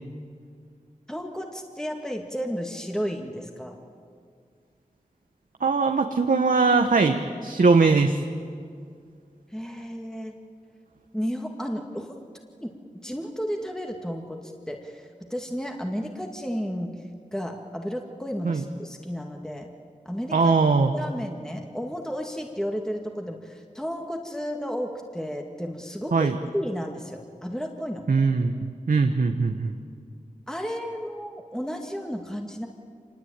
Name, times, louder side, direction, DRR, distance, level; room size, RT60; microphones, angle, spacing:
voice 1, 1.1-3.8 9.5-10.4 11.1-12.1 12.6-17.0 17.3-19.7 20.1-20.5 20.9-28.1 30.5-32.7, equal, 5° left, 2 dB, 2.2 m, -33 dB
voice 2, 5.6-8.2 18.4-18.6 20.3-21.0 26.1-26.4 28.1-29.7, right 4 dB, 70° right, 5 dB, 1.2 m, -21 dB
25.0 x 20.5 x 8.9 m, 2.2 s
cardioid pair, 45°, 14 cm